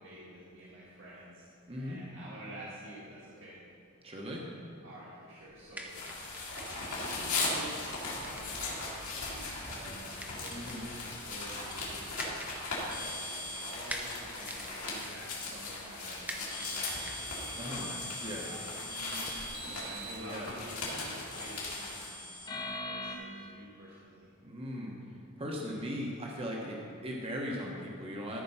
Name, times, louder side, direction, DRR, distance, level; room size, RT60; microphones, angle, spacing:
voice 1, 0.0-1.5 1.8-3.6 4.8-6.0 6.5-7.9 8.2-12.4 12.8-17.9 18.4-22.1 22.4-24.3, right 1 dB, 60° right, -8 dB, 1.8 m, -49 dB
voice 2, 1.7-2.0 4.0-4.4 10.5-10.8 17.6-17.9 18.2-18.5 20.0-20.5 24.4-24.9 25.4-28.4, equal, 25° right, -2 dB, 1.1 m, -38 dB
sound 1, 5.5-19.5, right 1 dB, 5° right, 0.7 m, -48 dB
sound 2, 5.9-22.1, left 3 dB, 70° left, 2.5 m, -39 dB
sound 3, 6.9-7.0 8.1-8.2 9.3-9.4 10.5-10.6 11.7-11.8 12.9-13.7 14.1-14.2 15.3-15.4 16.5-20.1 21.3-23.2, left 1 dB, 20° left, 0.9 m, -41 dB
13.5 x 4.6 x 5.6 m, 2.5 s
head